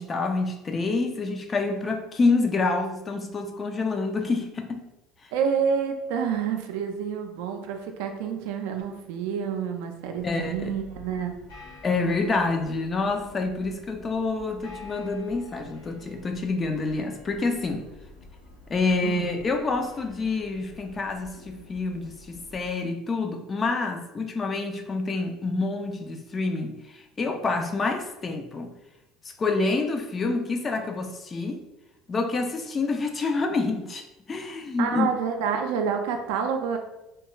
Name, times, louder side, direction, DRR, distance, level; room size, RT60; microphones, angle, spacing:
voice 1, 0.0-4.8 10.2-10.7 11.8-17.9 18.7-28.7 29.4-31.6 32.1-35.1 35.5-35.6, left 3 dB, 30° left, 5 dB, 0.4 m, -27 dB
voice 2, 5.3-11.3 19.0-19.3 34.8-36.8, right 7 dB, 80° right, 5 dB, 0.4 m, -28 dB
sound 1, 10.2-22.7, left 3 dB, 90° left, 1.1 m, -48 dB
2.3 x 2.3 x 2.9 m, 0.92 s
supercardioid pair, 85°, 0 cm